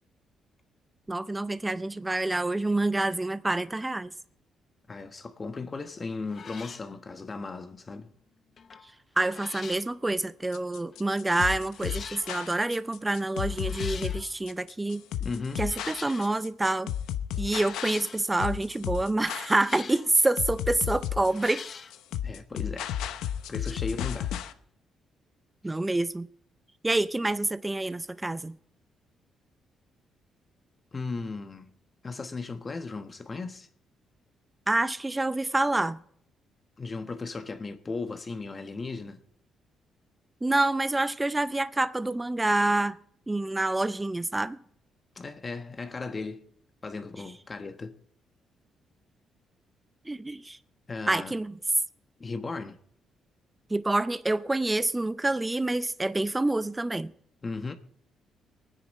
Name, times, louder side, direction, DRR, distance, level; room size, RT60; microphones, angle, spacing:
voice 1, 1.1-4.1 9.2-15.0 15.6-16.9 17.4-21.6 25.6-26.3 26.8-28.6 34.7-36.0 40.4-43.0 43.3-44.6 50.1-50.6 51.1-51.5 53.7-57.1, right 2 dB, 15° right, 0.5 m, -27 dB
voice 2, 4.9-8.1 15.2-15.6 22.2-22.9 23.5-24.3 25.6-25.8 30.9-31.7 32.0-33.7 36.8-39.2 45.2-46.4 46.8-48.0 50.9-51.3 52.2-52.7 57.4-57.7, left 4 dB, 30° left, 1.2 m, -36 dB
sound 1, 5.8-5.9 6.3-6.9 8.6-8.9 9.2-9.9 10.9-11.0 11.7-12.3 13.5-14.3 15.6-16.4 17.6-18.3 19.4-20.1 21.2-22.0, left 6 dB, 50° left, 0.9 m, -43 dB
sound 2, 10.5-24.5, left 10 dB, 90° left, 0.8 m, -33 dB
22.5 x 9.8 x 4.1 m
cardioid pair, 90°, 0 cm